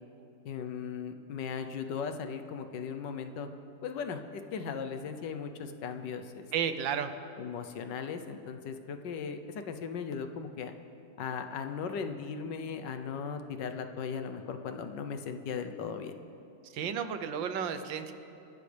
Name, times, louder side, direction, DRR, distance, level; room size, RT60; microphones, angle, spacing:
voice 1, 0.4-3.5 3.8-6.5 7.4-10.7 11.2-16.2, left 6 dB, 75° left, 8 dB, 1.5 m, -37 dB
voice 2, 6.5-7.1 16.7-18.1, right 7 dB, 85° right, 9 dB, 1.6 m, -32 dB
28.0 x 13.0 x 3.4 m, 2.7 s
omnidirectional pair, 2.0 m